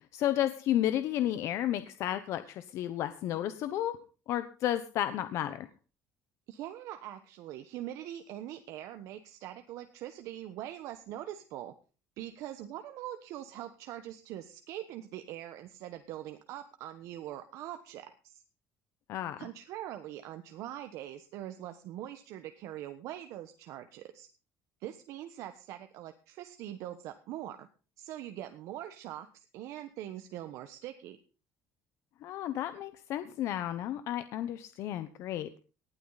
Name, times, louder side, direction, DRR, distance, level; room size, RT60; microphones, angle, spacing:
voice 1, 0.1-3.9 4.3-5.7 19.1-19.5 32.2-35.6, left 12 dB, 60° left, 11 dB, 1.0 m, -32 dB
voice 2, 6.5-11.7 12.2-18.4 19.4-24.3 24.8-27.7 28.0-31.2, right 12 dB, 70° right, 8 dB, 1.3 m, -43 dB
19.0 x 11.5 x 4.1 m, 0.37 s
cardioid pair, 155°, 6 cm